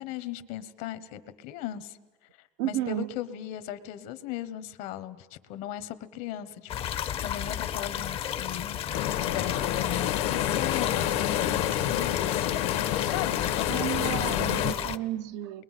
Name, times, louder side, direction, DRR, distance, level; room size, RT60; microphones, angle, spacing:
voice 1, 0.0-2.0 2.6-6.7 7.2-12.4 13.0-14.6, left 11 dB, 65° left, 12 dB, 1.2 m, -38 dB
voice 2, 2.6-3.1 13.7-15.6, right 13 dB, 80° right, 10 dB, 0.7 m, -32 dB
sound 1, 6.7-15.0, left 10 dB, 40° left, 0.6 m, -33 dB
sound 2, 8.9-14.7, left 12 dB, 85° left, 1.6 m, -28 dB
29.5 x 22.0 x 5.7 m, 1.2 s
cardioid pair, 130°, 15 cm